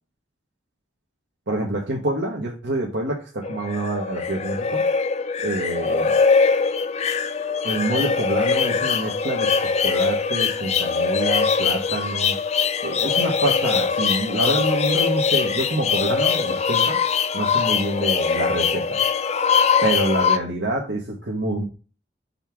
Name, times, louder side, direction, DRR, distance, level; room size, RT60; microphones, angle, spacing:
voice 1, 1.5-4.8 5.4-6.1 7.6-12.4 12.8-17.0 17.3-19.0 19.8-21.6, right 1 dB, 80° right, -1 dB, 1.4 m, -26 dB
sound 1, 3.4-20.4, left 5 dB, 35° left, 0.4 m, -22 dB
5.7 x 3.6 x 5.9 m, 0.35 s
head